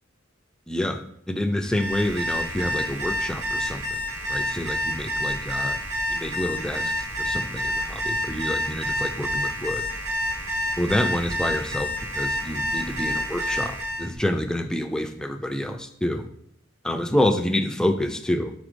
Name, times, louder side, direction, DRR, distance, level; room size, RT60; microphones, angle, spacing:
voice 1, 0.7-4.0 4.3-5.8 6.1-9.9 10.8-16.3 16.8-18.5, left 1 dB, 5° left, 6 dB, 0.4 m, -27 dB
Alarm, 1.6-14.1, equal, 80° right, 1.8 m, -28 dB
6.1 x 3.8 x 5.1 m, 0.71 s
head